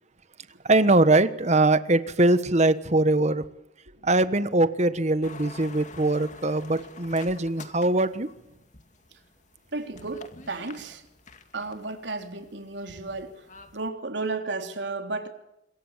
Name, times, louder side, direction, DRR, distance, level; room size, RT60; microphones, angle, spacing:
voice 1, 0.6-3.4 4.0-8.3, right 2 dB, 40° right, 1.4 m, -22 dB
sound 1, 5.2-13.9, left 3 dB, 45° left, 2.2 m, -48 dB
voice 2, 9.7-11.0 11.5-13.3 13.7-15.3, right 3 dB, 75° right, 3.6 m, -33 dB
26.5 x 22.5 x 7.4 m
head